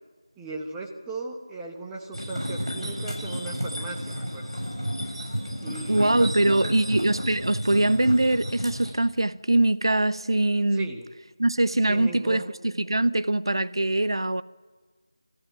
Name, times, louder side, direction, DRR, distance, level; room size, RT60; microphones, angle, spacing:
voice 1, 0.4-4.5 5.6-6.8 10.7-11.0 11.9-12.4, right 3 dB, 10° right, 1.0 m, -37 dB
sound 1, 2.1-8.9, equal, 90° right, 7.0 m, -32 dB
voice 2, 5.9-10.9 11.4-14.4, right 2 dB, 70° right, 0.7 m, -23 dB
26.0 x 14.5 x 9.0 m
figure-of-eight pair, 165°, 3 cm